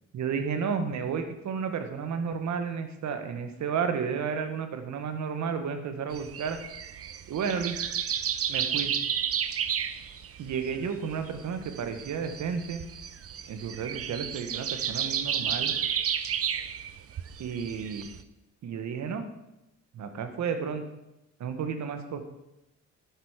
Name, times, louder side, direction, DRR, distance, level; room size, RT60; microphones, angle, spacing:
voice 1, 0.1-6.6 7.3-7.9 8.5-8.9 10.4-12.8 13.5-15.7 17.4-18.1 18.6-19.2 19.9-20.8 21.4-22.2, right 6 dB, 70° right, 8 dB, 1.6 m, -32 dB
sound 1, 6.1-18.2, right 8 dB, 50° right, 0.8 m, -32 dB
11.0 x 8.2 x 5.1 m, 0.91 s
cardioid pair, 90°, 30 cm